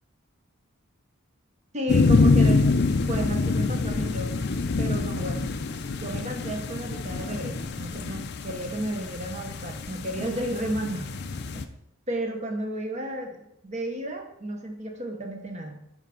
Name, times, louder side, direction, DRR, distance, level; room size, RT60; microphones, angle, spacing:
voice 1, 1.7-2.6 2.9-4.3 4.8-5.5 5.9-11.1 11.5-11.7 12.1-13.4 13.6-15.8, right 1 dB, 35° right, 3 dB, 1.1 m, -32 dB
sound 1, 1.9-11.6, left 3 dB, 50° left, 0.5 m, -25 dB
8.9 x 3.4 x 5.2 m, 0.76 s
head